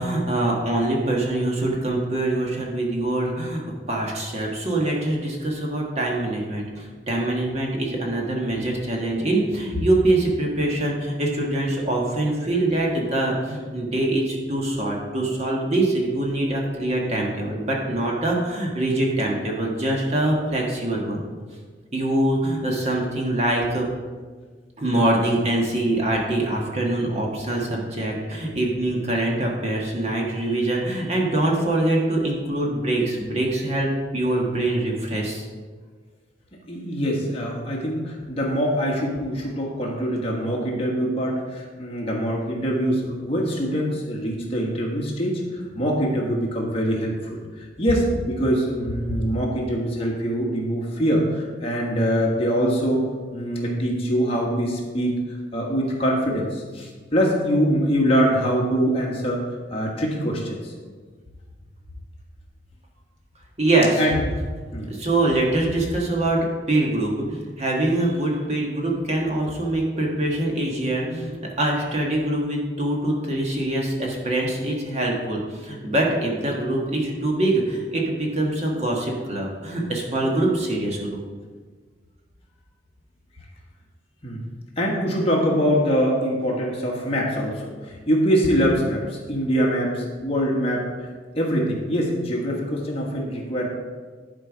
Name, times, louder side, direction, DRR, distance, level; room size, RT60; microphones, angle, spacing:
voice 1, 0.0-21.3 21.9-23.9 24.8-35.5 63.6-64.0 64.9-66.4 66.7-81.2, right 1 dB, 35° right, -1 dB, 1.4 m, -24 dB
voice 2, 36.7-53.0 53.3-55.2 55.5-59.4 59.7-60.7 64.0-64.2 64.7-64.9 84.2-84.4 84.8-91.1 91.4-93.7, equal, 35° left, -2 dB, 1.4 m, -24 dB
11.5 x 4.5 x 5.0 m, 1.5 s
head